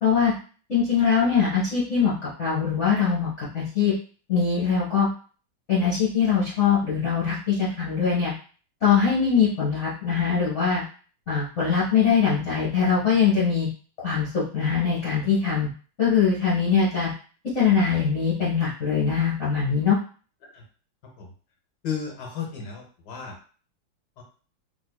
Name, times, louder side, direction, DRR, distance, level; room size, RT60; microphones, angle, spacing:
voice 1, 0.0-0.3 0.7-2.1 2.4-3.3 3.5-3.9 4.3-5.1 5.7-8.3 8.8-10.8 11.3-13.7 14.0-15.7 16.0-17.1 17.5-20.0, left 6 dB, 45° left, -8 dB, 1.1 m, -22 dB
voice 2, 21.8-23.3 24.2-24.3, left 7 dB, 60° left, 1 dB, 1.3 m, -33 dB
3.5 x 2.8 x 2.2 m, 0.40 s
omnidirectional pair, 2.1 m